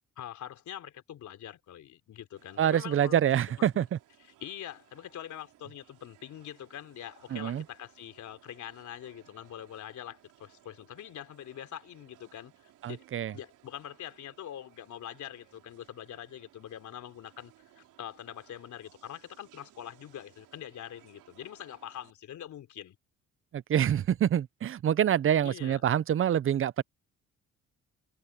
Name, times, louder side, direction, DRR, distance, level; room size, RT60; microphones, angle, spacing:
voice 1, 0.2-3.2 3.7-3.8 4.4-13.0 13.3-23.0 25.4-25.8, left 11 dB, 70° left, 3.4 m, -44 dB
sound 1, 2.4-22.1, right 13 dB, 85° right, 3.7 m, -62 dB
voice 2, 2.6-4.0 7.3-7.6 12.8-13.3 23.5-26.8, right 10 dB, 45° right, 0.6 m, -26 dB
cardioid pair, 90°, 30 cm